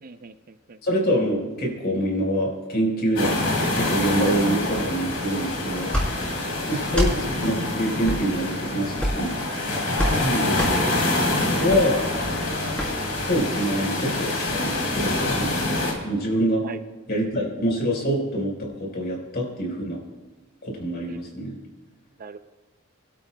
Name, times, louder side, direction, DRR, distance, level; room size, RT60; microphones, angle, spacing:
voice 1, 0.0-0.8 6.4-7.0 9.9-10.5 16.6-16.8 21.1-21.7 22.2-22.4, right 4 dB, 40° right, 10 dB, 0.5 m, -43 dB
voice 2, 0.8-5.9 6.7-9.3 10.2-10.9 11.6-12.0 13.2-16.6 17.1-20.0 20.6-21.6, equal, 50° left, -1 dB, 4.3 m, -25 dB
sound 1, 3.2-15.9, left 2 dB, 90° left, 3.8 m, -26 dB
sound 2, 5.9-6.1 6.9-7.1 8.0-8.2 8.9-9.3 10.0-10.2 10.5-10.7 11.7-11.8 12.7-12.9, equal, 5° left, 4.5 m, -24 dB
29.5 x 12.5 x 2.2 m, 1.2 s
head